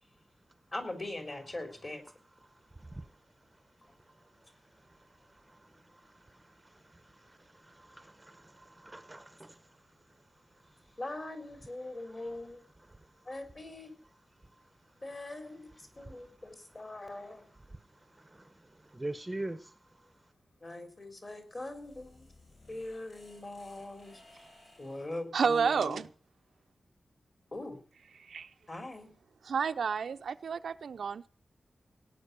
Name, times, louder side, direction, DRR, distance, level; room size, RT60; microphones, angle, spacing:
voice 1, 0.7-2.0 11.0-12.6 13.2-13.9 15.0-17.5 20.6-22.3 22.7-24.2 24.8-26.0 27.5-27.8 28.7-29.1, left 2 dB, 30° left, 6 dB, 3.8 m, -41 dB
voice 2, 2.8-3.1 4.9-5.0 5.3-9.6 12.2-12.3 16.0-16.1 18.1-19.7, right 2 dB, 15° right, 10 dB, 0.9 m, -45 dB
sound 1, 21.4-25.2, left 2 dB, 50° left, 6.6 m, -60 dB
voice 3, 25.3-26.1 28.2-28.5 29.4-31.3, right 6 dB, 85° right, 10 dB, 0.6 m, -30 dB
18.0 x 9.4 x 6.8 m, 0.42 s
wide cardioid pair, 145°, 0 cm